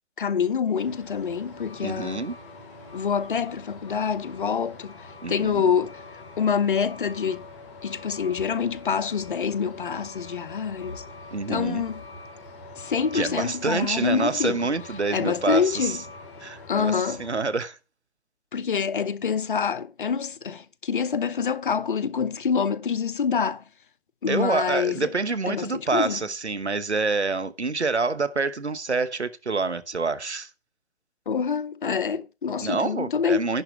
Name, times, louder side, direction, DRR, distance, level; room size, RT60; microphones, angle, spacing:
voice 1, 0.2-2.2 2.9-4.9 5.3-7.5 7.8-11.0 11.5-12.0 12.8-14.6 15.1-16.0 16.7-17.3 18.5-23.6 24.2-25.1 25.5-26.2 31.3-33.6, left 6 dB, 50° left, 0.9 m, -26 dB
Truck, 0.8-17.5, left 3 dB, 25° left, 3.1 m, -44 dB
voice 2, 1.8-2.3 5.2-5.7 11.3-11.8 13.1-16.0 16.4-17.8 24.3-30.5 32.6-33.6, right 4 dB, 85° right, 1.2 m, -27 dB
11.0 x 4.4 x 6.6 m
figure-of-eight pair, 140°, 33 cm